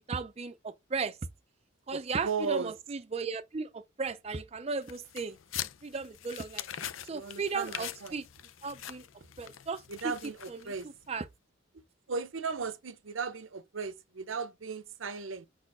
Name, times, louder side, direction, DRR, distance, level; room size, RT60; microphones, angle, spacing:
voice 1, 0.1-1.2 1.9-5.4 5.8-6.7 7.0-8.2 8.6-9.1 9.4-10.1 10.5-10.7 11.1-11.3, right 4 dB, 30° right, 0.5 m, -36 dB
voice 2, 1.9-2.7 7.1-8.2 9.9-10.9 11.7-11.8 12.1-15.5, right 5 dB, 80° right, 0.8 m, -36 dB
sound 1, 4.8-11.1, left 11 dB, 85° left, 0.6 m, -43 dB
5.6 x 4.3 x 4.7 m
head